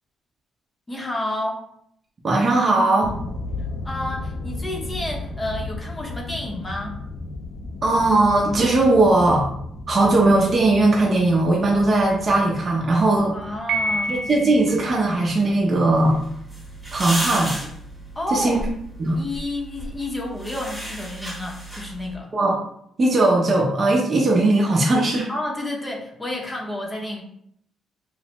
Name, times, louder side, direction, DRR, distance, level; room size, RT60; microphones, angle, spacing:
voice 1, 0.9-1.6 3.8-7.0 13.3-14.3 18.1-18.6 19.1-22.3 25.3-27.2, left 1 dB, 20° left, -1 dB, 0.7 m, -30 dB
voice 2, 2.2-3.2 7.8-9.5 9.9-13.4 14.1-16.2 16.9-17.5 18.3-18.6 19.0-19.2 22.3-22.6 23.0-25.3, right 2 dB, 40° right, -2 dB, 0.6 m, -18 dB
sound 1, 3.0-19.3, left 2 dB, 70° left, 0.5 m, -36 dB
Piano, 13.7-14.8, right 1 dB, 80° right, 0.6 m, -26 dB
sound 2, 15.9-22.1, right 1 dB, 5° right, 1.0 m, -33 dB
3.2 x 2.1 x 2.9 m, 0.70 s
cardioid pair, 90°, 0 cm